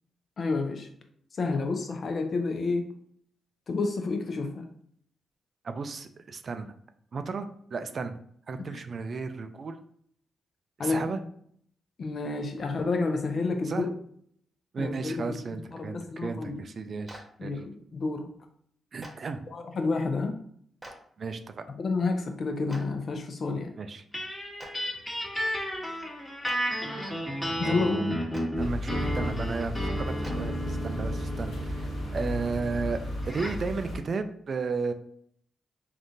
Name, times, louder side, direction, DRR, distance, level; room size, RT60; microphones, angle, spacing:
voice 1, 0.4-0.9 1.4-2.9 3.7-4.7 8.7-8.8 10.8-11.2 12.0-13.9 14.8-16.6 17.4-18.3 19.5-20.4 21.7-23.7 27.6-28.1, left 3 dB, 60° left, 5 dB, 0.5 m, -30 dB
voice 2, 5.6-6.7 7.1-7.5 7.7-8.1 8.5-9.8 10.8-11.2 13.7-13.9 14.7-17.5 18.9-19.4 21.2-21.6 23.8-24.0 28.6-33.0 33.3-34.9, right 4 dB, 55° right, 9 dB, 0.3 m, -34 dB
Clapping, 17.1-17.2 19.0-19.1 20.8-20.9 22.7-22.8 24.6-24.7 26.4-26.5 28.3-28.4 30.2-30.3, right 1 dB, 25° right, 0.9 m, -43 dB
sound 1, 24.1-33.7, equal, 10° left, 1.2 m, -33 dB
sound 2, 28.5-34.0, left 1 dB, 75° left, 1.3 m, -35 dB
3.5 x 2.4 x 2.6 m, 0.64 s
hypercardioid pair, 45°, 0 cm